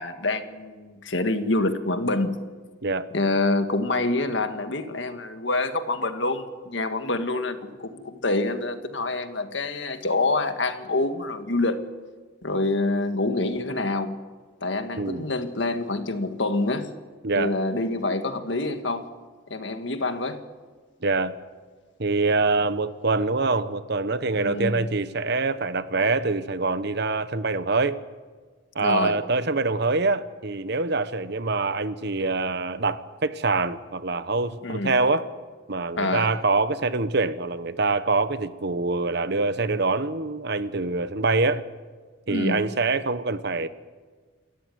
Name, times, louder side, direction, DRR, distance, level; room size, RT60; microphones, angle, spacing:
voice 1, 0.0-2.4 3.1-11.9 12.4-14.2 14.6-16.9 17.3-19.1 19.5-20.4 24.4-24.9 28.8-29.2 34.6-34.9 36.0-36.3 42.3-42.7, left 2 dB, 65° left, 8 dB, 1.8 m, -26 dB
voice 2, 15.0-15.3 17.2-17.5 21.0-21.3 22.0-28.0 28.7-35.2 35.7-41.6 42.3-43.7, right 3 dB, 55° right, 13 dB, 1.1 m, -25 dB
28.0 x 14.0 x 9.4 m, 1.4 s
head